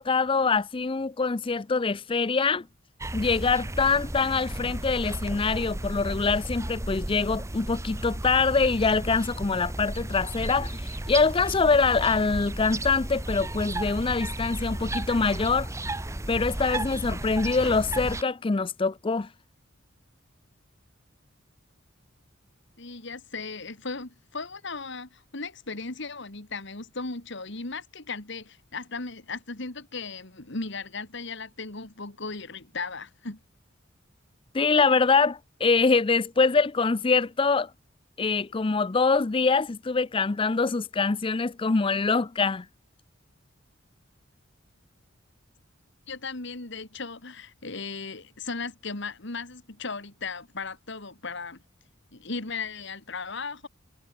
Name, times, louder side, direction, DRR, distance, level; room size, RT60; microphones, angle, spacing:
voice 1, 0.0-2.7 3.1-15.7 16.3-19.3 34.5-37.7 38.2-42.7, left 4 dB, 25° left, 0.5 m, -24 dB
sound 1, 3.0-18.2, right 1 dB, 15° right, 1.0 m, -34 dB
voice 2, 22.8-33.4 46.1-51.6 52.1-53.7, left 4 dB, 60° left, 2.3 m, -36 dB
head